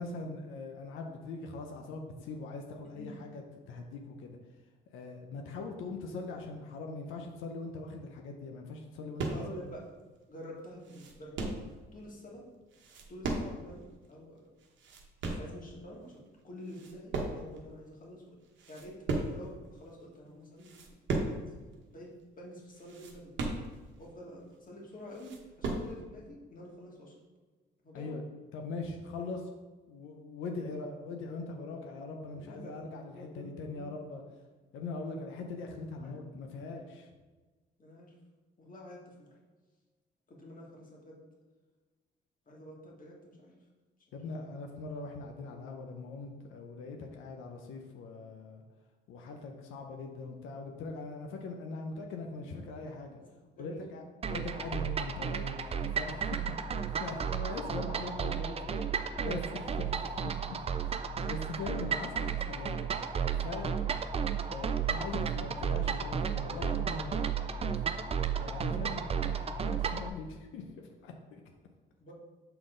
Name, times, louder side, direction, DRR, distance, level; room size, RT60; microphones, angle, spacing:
voice 1, 0.0-3.4 3.7-4.4 4.9-9.4 27.9-28.2 28.5-29.4 29.9-34.2 34.7-37.1 44.1-48.6 49.1-53.2 53.6-54.0 54.3-56.4 56.7-58.6 59.2-60.0 60.8-62.9 63.4-63.7 64.5-67.2 68.4-71.4, left 3 dB, 85° left, 3 dB, 0.7 m, -41 dB
voice 2, 9.2-9.8 10.3-12.4 13.1-14.5 15.4-18.4 18.7-19.0 19.3-20.8 21.2-21.5 21.9-22.1 22.4-23.4 24.0-27.1 27.8-28.2 32.3-32.8 33.1-33.9 36.0-36.2 37.8-38.1 38.6-39.3 40.3-41.2 42.5-43.6 52.4-52.6 53.2-53.3 53.6-54.0 58.6-58.9 61.2-61.3 72.0-72.1, equal, 45° left, -3 dB, 1.8 m, -48 dB
sound 1, 9.2-9.6 10.1-10.2 10.6-11.7 12.7-13.8 14.0-14.1 14.6-15.5 16.1-16.4 16.6-17.7 18.0-18.1 18.5-19.5 20.0-20.2 20.6-21.5 21.7-21.8 22.2-22.3 22.7-24.0 24.5-24.6 24.9-25.9, right 2 dB, 70° right, 1.1 m, -36 dB
sound 2, 54.2-70.1, right 7 dB, 30° right, 0.4 m, -33 dB
6.8 x 3.8 x 3.8 m, 1.3 s
cardioid pair, 90°, 20 cm